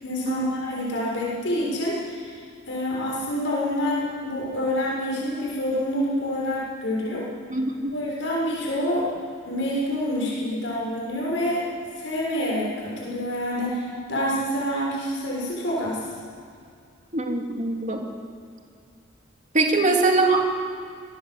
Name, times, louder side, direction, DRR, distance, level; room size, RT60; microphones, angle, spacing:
voice 1, 0.0-2.4 2.7-7.3 7.9-9.1 9.5-11.6 12.0-16.0 19.6-19.9, left 1 dB, 70° left, -5 dB, 6.8 m, -27 dB
voice 2, 7.5-8.0 17.1-18.1 19.5-20.6, right 3 dB, 40° right, 2 dB, 2.8 m, -22 dB
25.5 x 18.5 x 8.0 m, 2.3 s
head